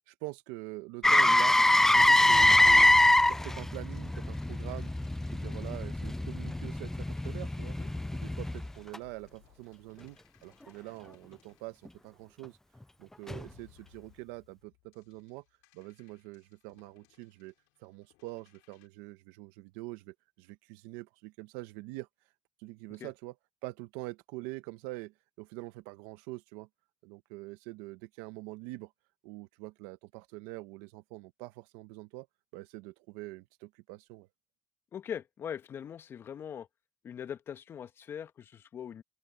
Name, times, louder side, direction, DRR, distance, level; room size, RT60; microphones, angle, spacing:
voice 1, 0.1-1.6 1.9-3.0 3.3-4.9 5.3-7.8 8.1-12.6 13.0-15.4 15.7-17.5 17.8-22.1 22.6-23.3 23.6-26.7 27.0-28.9 29.2-32.3 32.5-34.3, right 21 dB, 85° right, 1.4 m, -44 dB
Motor vehicle (road), 1.0-9.0 13.3-13.4, left 1 dB, 10° left, 0.4 m, -24 dB
sound 1, 3.5-12.6 13.2-18.9, left 29 dB, 85° left, 6.0 m, -64 dB
voice 2, 34.9-36.7 37.0-39.0, left 8 dB, 55° left, 1.4 m, -41 dB
open air
supercardioid pair, 65°, 5 cm